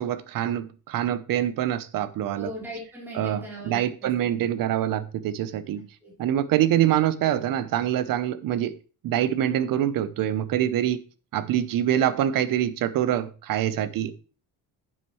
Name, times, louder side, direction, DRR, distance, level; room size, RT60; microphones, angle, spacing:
voice 1, 0.0-2.5 3.1-5.8 6.2-8.7 9.0-11.0 11.3-14.2, right 11 dB, 60° right, 0.8 m, -25 dB
voice 2, 2.3-4.1 6.0-6.1, equal, 5° right, 3.4 m, -38 dB
10.0 x 7.3 x 3.1 m
cardioid pair, 170°, 37 cm